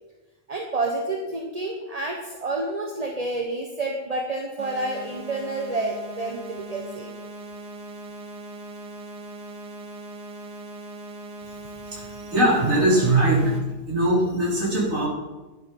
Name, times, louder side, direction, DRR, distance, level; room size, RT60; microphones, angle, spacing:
voice 1, 0.5-7.1, right 2 dB, 25° right, 2 dB, 1.0 m, -29 dB
sound 1, 4.6-13.6, right 2 dB, 70° right, 2.4 m, -40 dB
voice 2, 11.9-13.5 13.9-15.1, right 1 dB, 45° right, -4 dB, 4.4 m, -21 dB
11.5 x 11.0 x 5.4 m, 1.1 s
omnidirectional pair, 1.9 m